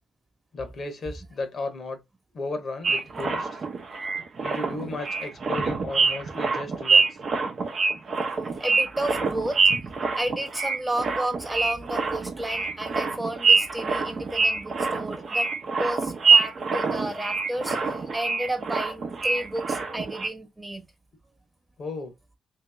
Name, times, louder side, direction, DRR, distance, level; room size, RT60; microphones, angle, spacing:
voice 1, 0.5-2.0 2.3-3.5 4.2-7.1 21.8-22.1, left 2 dB, 55° left, 0.9 m, -34 dB
sound 1, 2.8-20.3, right 4 dB, 50° right, 0.7 m, -25 dB
voice 2, 8.4-9.6 10.1-15.5 15.8-20.9, right 1 dB, 15° right, 1.1 m, -32 dB
2.9 x 2.8 x 3.4 m
supercardioid pair, 60°, 0 cm